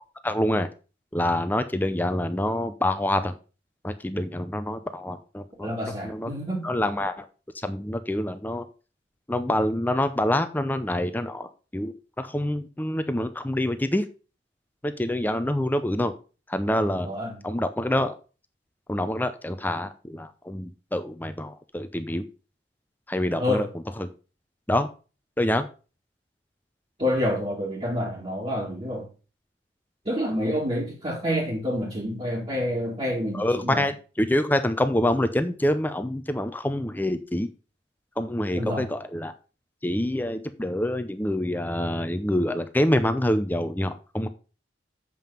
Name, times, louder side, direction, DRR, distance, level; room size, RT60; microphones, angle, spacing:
voice 1, 0.2-0.7 1.1-3.3 3.8-5.8 6.0-6.3 6.6-7.3 7.5-8.7 9.3-14.1 14.8-16.1 16.5-17.1 17.4-18.1 18.9-22.2 23.1-23.7 24.0-24.1 24.7-24.9 25.4-25.7 33.3-37.5 38.2-39.3 39.8-44.3, left 1 dB, 10° left, 0.6 m, -26 dB
voice 2, 5.6-6.7 17.0-17.4 23.3-23.7 27.0-29.1 30.1-33.8 38.5-38.9, equal, 30° right, 2.1 m, -28 dB
7.6 x 5.5 x 5.6 m
head